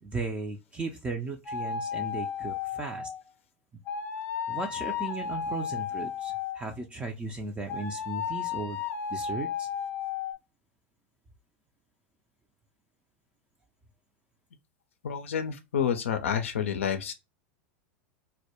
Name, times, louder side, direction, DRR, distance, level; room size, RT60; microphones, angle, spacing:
voice 1, 0.0-3.1 4.5-8.8 9.1-9.7, right 3 dB, 20° right, 0.4 m, -36 dB
sound 1, 1.4-3.2 3.8-6.7 7.7-10.3, left 7 dB, 35° left, 0.7 m, -33 dB
voice 2, 15.0-17.1, left 8 dB, 85° left, 0.4 m, -29 dB
2.2 x 2.1 x 2.7 m
hypercardioid pair, 95°, 7 cm